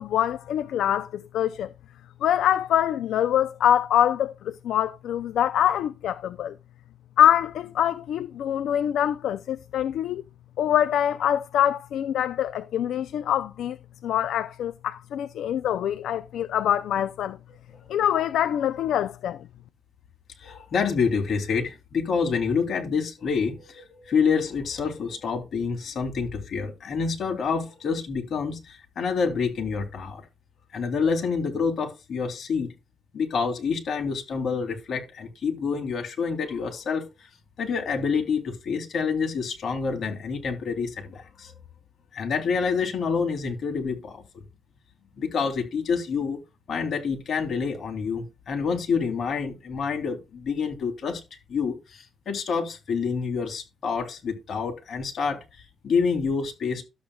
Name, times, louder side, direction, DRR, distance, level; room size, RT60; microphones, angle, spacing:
voice 1, 0.0-1.7 2.2-6.5 7.2-10.2 10.6-13.8 14.0-17.4 17.9-19.5, left 10 dB, 75° left, 0.4 m, -24 dB
voice 2, 20.4-30.2 30.7-32.7 33.1-37.3 37.6-41.5 42.1-44.2 45.2-46.4 46.7-51.2 51.5-56.8, left 5 dB, 55° left, 3.0 m, -27 dB
12.5 x 7.9 x 2.3 m
cardioid pair, 100°, 0 cm